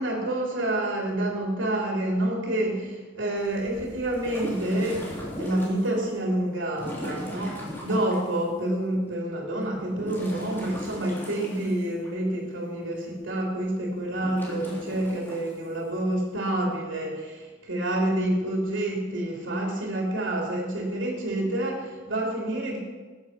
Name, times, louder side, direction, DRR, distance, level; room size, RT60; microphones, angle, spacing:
voice 1, 0.0-5.1 5.4-22.8, right 1 dB, 80° right, -1 dB, 3.1 m, -28 dB
Scuba diver bubbles, 3.4-5.9 6.7-8.3 9.8-12.1 14.1-15.5, equal, 10° left, 3.4 m, -38 dB
14.0 x 9.5 x 5.9 m, 1.3 s
head